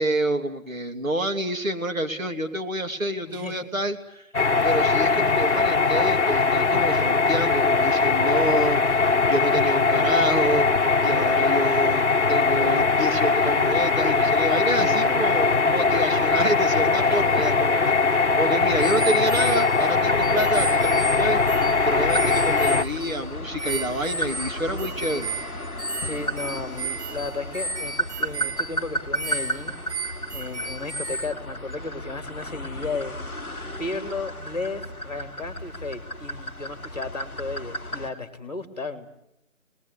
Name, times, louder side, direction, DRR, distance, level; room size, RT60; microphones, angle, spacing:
voice 1, 0.0-4.2 4.6-10.7 11.0-25.3, right 1 dB, 70° right, 5 dB, 3.2 m, -28 dB
voice 2, 3.2-3.6 14.8-15.1 17.1-17.2 26.0-29.7 30.0-33.1 33.8-39.1, left 3 dB, 30° left, 10 dB, 2.7 m, -34 dB
sound 1, 4.3-22.8, left 4 dB, 55° left, 1.0 m, -21 dB
sound 2, 18.8-23.3 23.6-31.3, right 3 dB, 55° right, 1.8 m, -34 dB
sound 3, 20.1-38.1, equal, 10° right, 2.1 m, -34 dB
29.5 x 20.5 x 8.3 m, 0.85 s
figure-of-eight pair, 180°, 42 cm